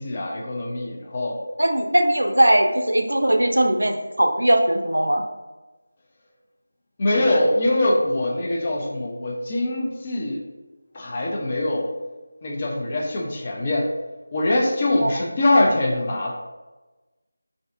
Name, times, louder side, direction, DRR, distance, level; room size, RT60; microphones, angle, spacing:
voice 1, 0.0-1.4 7.0-10.4 10.9-11.9 12.4-13.9 14.3-16.4, left 1 dB, 30° left, -2 dB, 0.4 m, -23 dB
voice 2, 1.6-5.2 15.0-15.1, right 1 dB, 75° right, 4 dB, 0.3 m, -19 dB
3.3 x 2.5 x 2.4 m, 1.2 s
figure-of-eight pair, 165°, 0 cm